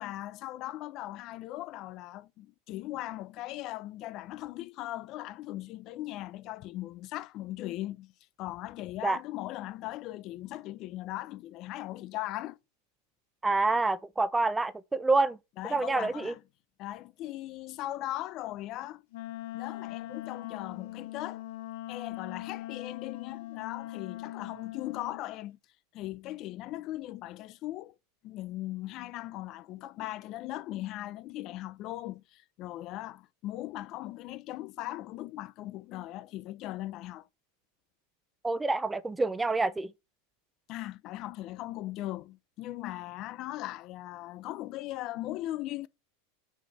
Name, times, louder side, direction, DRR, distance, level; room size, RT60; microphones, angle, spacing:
voice 1, 0.0-8.1 8.4-12.6 15.6-16.4 16.8-19.1 19.5-21.4 21.9-25.6 25.9-27.9 28.2-37.3 40.7-45.9, left 15 dB, 45° left, 0.7 m, -39 dB
voice 2, 13.4-15.4 15.7-16.3 38.4-39.9, right 3 dB, 10° right, 0.5 m, -27 dB
Wind instrument woodwind instrument, 19.1-25.2, left 15 dB, 70° left, 1.1 m, -41 dB
6.5 x 5.1 x 5.8 m
supercardioid pair, 120°, 0 cm